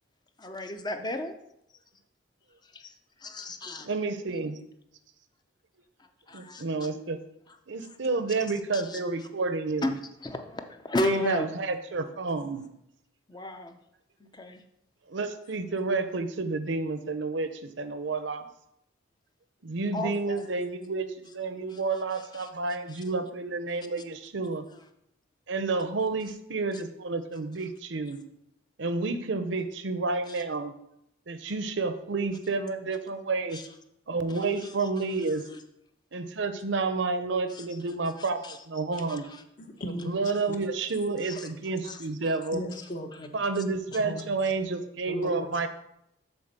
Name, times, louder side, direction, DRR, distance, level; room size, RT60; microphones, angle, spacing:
voice 1, 0.4-1.3 2.6-2.9 3.2-3.9 6.0-6.9 7.5-8.0 8.7-9.3 9.8-9.9 10.2-11.4 13.3-13.8 14.2-14.6 19.9-20.5 21.7-21.8 22.1-23.0 26.7-26.8 30.3-30.4 33.5-33.7 34.3-35.6 37.5-38.6 38.9-39.4 41.2-41.5 41.8-42.4 43.9-44.0, left 1 dB, 20° left, 7 dB, 0.6 m, -36 dB
voice 2, 3.8-4.6 6.3-7.2 7.7-10.0 11.0-12.6 15.1-17.5 17.8-18.4 19.6-24.6 25.5-28.2 28.8-30.7 31.3-33.6 34.1-35.4 36.1-39.2 39.8-42.7 43.3-45.7, right 3 dB, 70° right, 10 dB, 0.7 m, -30 dB
voice 3, 39.6-40.2 40.5-40.6 42.5-43.4 44.0-44.4 45.1-45.7, equal, 45° left, 5 dB, 1.0 m, -37 dB
7.1 x 4.2 x 6.7 m, 0.78 s
head